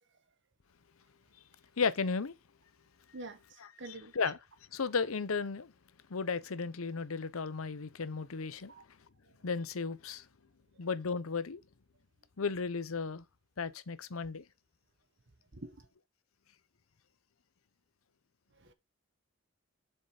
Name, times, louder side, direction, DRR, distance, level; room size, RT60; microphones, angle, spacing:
voice 1, 1.8-2.3 3.6-4.4 4.7-5.7 6.1-8.7 9.4-10.3 10.8-11.6 12.4-13.2 13.6-14.4, left 5 dB, 90° left, 0.8 m, -34 dB
voice 2, 3.1-4.1 8.7-8.8 15.5-15.8 18.6-18.7, right 2 dB, 60° right, 1.2 m, -46 dB
7.3 x 6.5 x 5.0 m
head